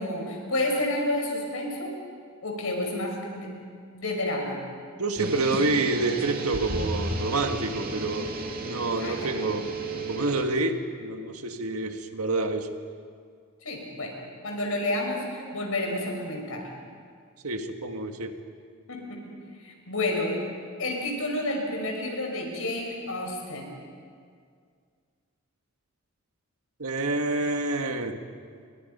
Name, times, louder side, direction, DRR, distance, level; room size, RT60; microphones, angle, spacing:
voice 1, 0.0-1.9 2.4-3.5 3.9-4.6 9.0-9.3 13.6-14.1 14.4-16.6 18.9-19.2 19.6-20.4 20.8-23.7, left 1 dB, 70° left, 1 dB, 5.7 m, -30 dB
voice 2, 5.0-8.3 8.6-9.7 10.1-12.7 17.4-18.3 26.8-28.2, right 2 dB, 80° right, 6 dB, 1.7 m, -28 dB
sound 1, 5.2-10.4, right 2 dB, 40° right, 2.3 m, -33 dB
30.0 x 23.5 x 5.6 m, 2.1 s
head